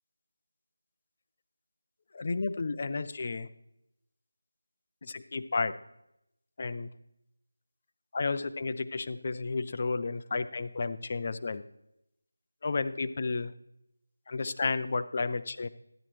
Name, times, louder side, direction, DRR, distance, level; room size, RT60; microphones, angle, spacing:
voice 1, 2.1-3.5 5.0-5.7 6.6-6.9 8.1-11.6 12.6-13.5 14.3-15.7, left 3 dB, 40° left, 10 dB, 0.5 m, -32 dB
12.0 x 9.8 x 3.1 m, 0.81 s
figure-of-eight pair, 170°, 0 cm